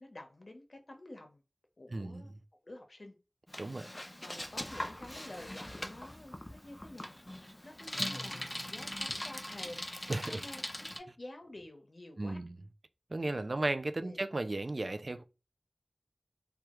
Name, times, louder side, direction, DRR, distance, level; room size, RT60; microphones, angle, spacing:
voice 1, 0.0-1.4 1.8-2.3 2.6-3.2 3.8-12.4 14.0-14.2, left 1 dB, 70° left, 0.7 m, -50 dB
voice 2, 1.9-2.2 3.6-3.9 10.1-10.4 12.2-12.5 13.1-15.2, right 2 dB, 65° right, 0.3 m, -35 dB
Bicycle, 3.5-11.0, left 1 dB, 25° left, 0.4 m, -41 dB
3.3 x 2.3 x 2.9 m
wide cardioid pair, 45°, 0 cm